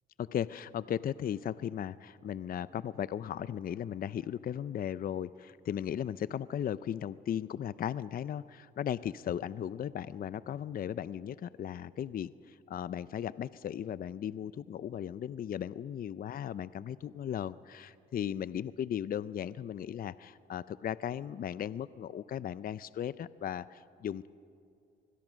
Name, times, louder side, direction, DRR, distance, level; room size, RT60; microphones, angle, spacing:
voice 1, 0.2-24.3, left 9 dB, 45° left, 17 dB, 0.5 m, -36 dB
24.5 x 21.0 x 6.3 m, 2.4 s
cardioid pair, 90°, 20 cm